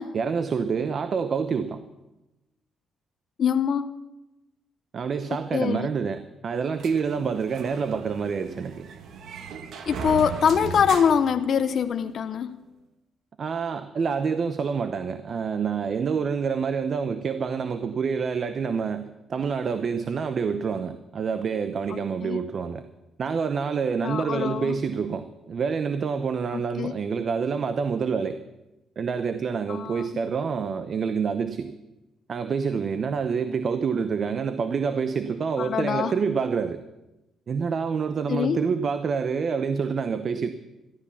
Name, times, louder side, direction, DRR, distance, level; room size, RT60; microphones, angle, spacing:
voice 1, 0.1-1.8 4.9-8.9 13.4-22.8 23.2-28.4 29.0-31.7 32.3-36.8 37.5-40.5, right 6 dB, 50° right, 11 dB, 0.8 m, -27 dB
voice 2, 3.4-3.9 5.5-5.9 9.9-12.7 21.9-22.4 24.0-24.8 26.5-26.9 29.7-30.1 35.6-36.1 38.3-38.6, left 7 dB, 55° left, 9 dB, 0.7 m, -24 dB
sound 1, 6.8-12.1, right 5 dB, 70° right, 1.3 m, -37 dB
14.0 x 12.0 x 7.1 m, 1.0 s
cardioid pair, 90°, 0 cm